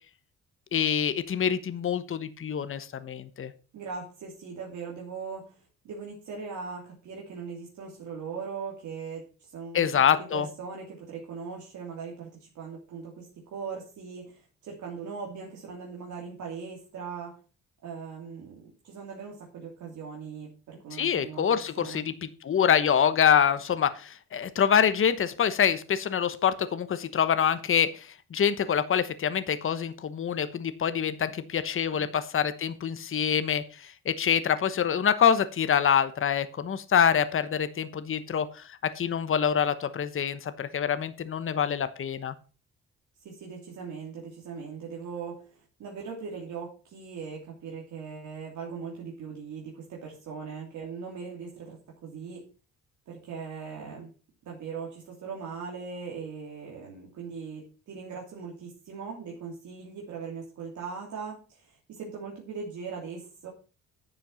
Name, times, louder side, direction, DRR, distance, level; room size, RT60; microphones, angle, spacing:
voice 1, 0.7-3.5 9.7-10.5 20.9-38.6 39.0-42.3, left 8 dB, 45° left, 12 dB, 1.1 m, -26 dB
voice 2, 3.7-5.5 5.8-17.4 17.8-22.0 31.9-32.1 43.2-52.4 53.1-54.1 54.4-63.5, right 5 dB, 70° right, -2 dB, 2.9 m, -40 dB
10.5 x 6.9 x 5.7 m, 0.35 s
cardioid pair, 90°, 30 cm